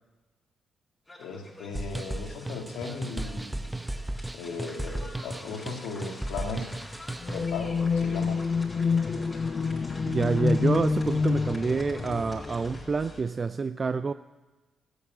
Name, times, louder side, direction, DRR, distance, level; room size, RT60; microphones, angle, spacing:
sound 1, 1.1-13.2, left 1 dB, 20° left, 4.6 m, -49 dB
voice 1, 1.2-3.7 4.3-6.7 7.3-8.4, left 4 dB, 80° left, 3 dB, 2.1 m, -37 dB
sound 2, 1.8-7.6, right 1 dB, 15° right, 0.9 m, -35 dB
sound 3, 7.2-13.2, left 4 dB, 40° left, 0.7 m, -28 dB
voice 2, 10.1-14.1, right 4 dB, 40° right, 13 dB, 0.4 m, -27 dB
13.5 x 9.2 x 8.7 m, 1.2 s
supercardioid pair, 50°, 0 cm